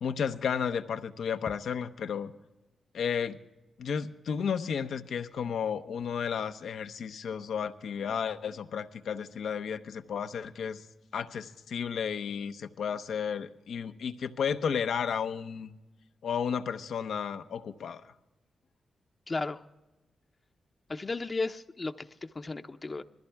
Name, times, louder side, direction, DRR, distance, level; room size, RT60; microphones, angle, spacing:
voice 1, 0.0-2.3 2.9-3.4 3.8-10.9 11.1-15.8 16.2-18.1, left 7 dB, 80° left, 8 dB, 0.8 m, -33 dB
voice 2, 19.3-19.6 20.9-23.0, left 3 dB, 35° left, 8 dB, 0.7 m, -34 dB
21.0 x 14.5 x 3.5 m, 1.0 s
cardioid pair, 60°, 0 cm